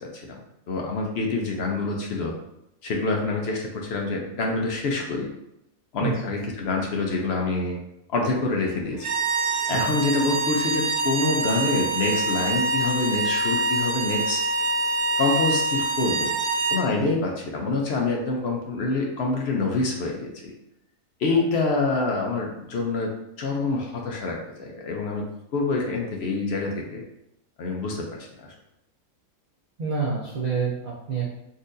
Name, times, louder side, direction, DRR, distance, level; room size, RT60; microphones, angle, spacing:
voice 1, 0.0-0.4 0.7-2.3 2.8-5.3 5.9-7.8 8.1-9.1 9.7-14.4 15.2-16.3 16.7-20.5 21.2-27.0 27.6-28.5, left 3 dB, 60° left, 0 dB, 0.7 m, -26 dB
voice 2, 6.0-6.4 9.7-9.8 17.1-17.2 21.3-21.4 29.8-31.3, right 5 dB, 55° right, -5 dB, 0.5 m, -28 dB
sound 1, 9.0-16.9, right 3 dB, 85° right, 1.2 m, -25 dB
4.0 x 2.7 x 2.5 m, 0.83 s
omnidirectional pair, 1.6 m